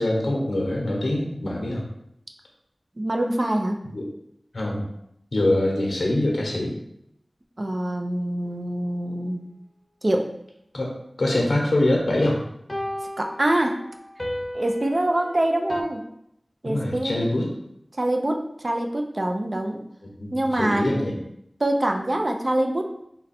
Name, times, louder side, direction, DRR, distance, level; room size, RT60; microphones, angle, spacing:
voice 1, 0.0-1.8 3.9-4.1 4.5-4.8 5.3-6.7 10.7-12.4 16.6-17.5 20.2-20.3 20.6-21.1, left 1 dB, 90° left, -1 dB, 0.7 m, -24 dB
voice 2, 3.0-3.8 7.6-9.4 10.0-10.3 13.2-13.8 14.5-16.0 16.6-17.5 18.0-19.9 20.3-20.9 21.6-23.0, right 1 dB, 50° right, 3 dB, 0.4 m, -25 dB
sound 1, 8.5-8.6 12.7-15.8, left 1 dB, 30° left, 0.7 m, -34 dB
3.8 x 2.2 x 4.1 m, 0.77 s
wide cardioid pair, 50°, 0 cm